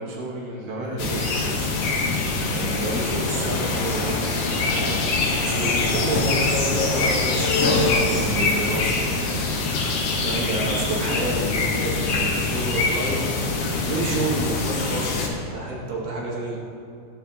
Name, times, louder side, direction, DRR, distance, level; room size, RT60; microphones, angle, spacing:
voice 1, 0.0-2.2 2.5-5.0 5.4-9.6 10.2-13.2 13.8-16.6, right 2 dB, 65° right, -4 dB, 3.9 m, -29 dB
sound 1, 1.0-15.3, left 3 dB, 75° left, 3.7 m, -24 dB
17.0 x 11.5 x 3.3 m, 2.6 s
omnidirectional pair, 4.9 m